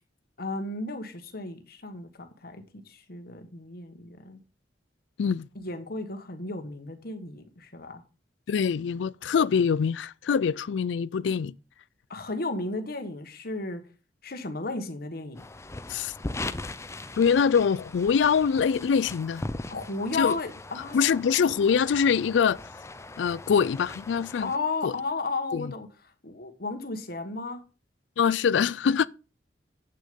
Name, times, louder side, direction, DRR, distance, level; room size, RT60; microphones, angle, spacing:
voice 1, 0.4-4.4 5.5-8.0 12.1-13.8 14.2-15.4 19.7-21.2 24.4-25.9 26.2-27.6, left 3 dB, 55° left, 1.4 m, -34 dB
voice 2, 8.5-11.5 15.9-16.1 17.2-19.4 20.1-20.4 20.9-22.6 23.2-24.5 24.8-24.9 25.5-25.7 28.2-29.1, left 6 dB, 85° left, 0.4 m, -24 dB
sound 1, 15.3-24.6, left 2 dB, 15° left, 0.5 m, -40 dB
8.5 x 6.4 x 5.2 m
head